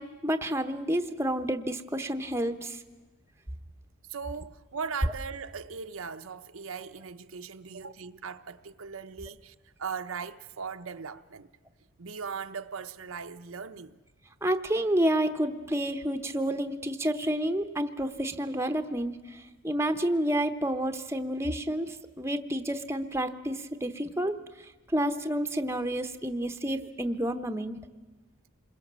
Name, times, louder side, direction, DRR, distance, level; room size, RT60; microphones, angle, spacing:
voice 1, 0.0-2.8 5.0-5.1 14.4-27.8, right 1 dB, 10° right, 0.8 m, -30 dB
voice 2, 4.1-11.5 12.0-14.0, right 5 dB, 75° right, 0.8 m, -39 dB
27.5 x 21.5 x 7.4 m
head